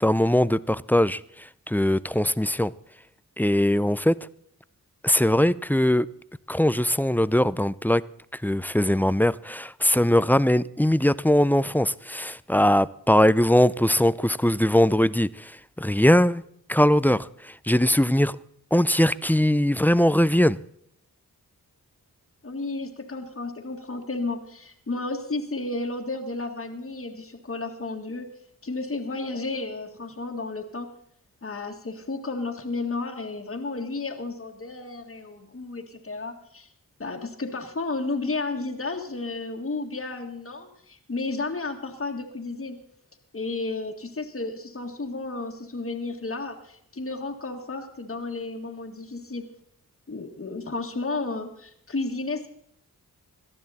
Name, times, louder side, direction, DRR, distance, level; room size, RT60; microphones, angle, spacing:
voice 1, 0.0-2.7 3.4-4.2 5.0-6.1 6.5-8.0 8.3-16.4 16.7-18.4 18.7-20.6, left 1 dB, 5° left, 0.4 m, -21 dB
voice 2, 22.4-28.3 28.6-30.9 31.4-36.7 37.0-42.8 43.3-49.5 50.1-52.5, left 3 dB, 40° left, 1.8 m, -32 dB
18.5 x 12.0 x 4.2 m
cardioid pair, 50°, 36 cm